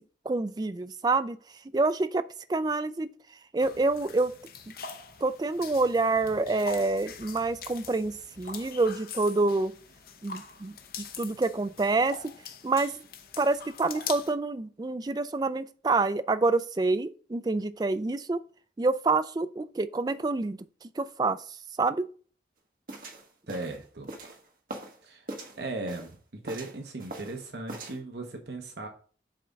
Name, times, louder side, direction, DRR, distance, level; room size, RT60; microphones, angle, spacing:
voice 1, 0.3-1.4 1.7-2.2 2.5-3.1 3.5-4.3 5.2-9.7 10.2-12.2 12.6-12.9 13.4-18.4 18.8-20.6 21.0-21.4 21.8-22.1, right 3 dB, 20° right, 0.3 m, -27 dB
sound 1, 3.6-14.3, left 6 dB, 55° left, 0.8 m, -43 dB
sound 2, 22.9-25.0 25.3-26.1 26.5-27.4 27.7-28.0, right 2 dB, 50° right, 1.4 m, -41 dB
voice 2, 23.5-24.1 25.0-25.3 25.6-26.2 26.4-28.9, right 2 dB, 65° right, 0.9 m, -37 dB
7.6 x 3.5 x 5.2 m
head